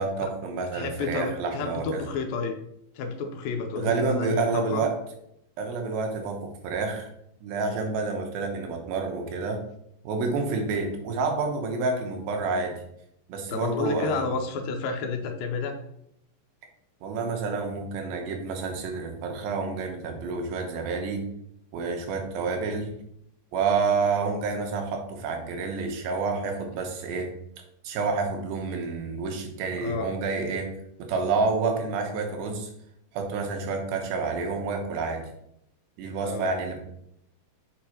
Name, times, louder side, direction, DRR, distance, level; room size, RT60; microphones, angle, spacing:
voice 1, 0.0-2.0 3.8-4.9 5.6-7.1 7.4-9.6 10.0-12.8 13.3-14.3 17.0-21.3 21.7-22.9 23.5-27.3 27.8-30.7 31.1-32.7 33.1-35.2 36.0-36.8, right 4 dB, 85° right, 3 dB, 2.8 m, -29 dB
voice 2, 0.7-2.6 3.0-4.8 13.5-15.8 29.8-30.1 36.2-36.5, left 4 dB, 85° left, 5 dB, 2.5 m, -30 dB
7.7 x 5.3 x 2.9 m, 0.75 s
omnidirectional pair, 4.1 m